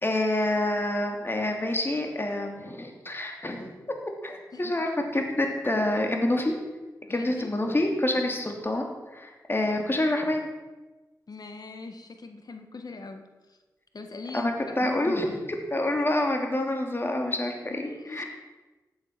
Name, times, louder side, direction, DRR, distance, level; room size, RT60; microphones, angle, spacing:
voice 1, 0.0-3.7 4.0-6.5 7.1-10.5 14.3-15.3 15.7-18.2, left 1 dB, 30° left, 3 dB, 2.9 m, -27 dB
voice 2, 7.1-7.5 11.3-13.2 13.9-15.4 17.7-18.2, left 3 dB, 65° left, 7 dB, 1.6 m, -40 dB
15.0 x 8.7 x 6.1 m, 1.2 s
cardioid pair, 50°, 7 cm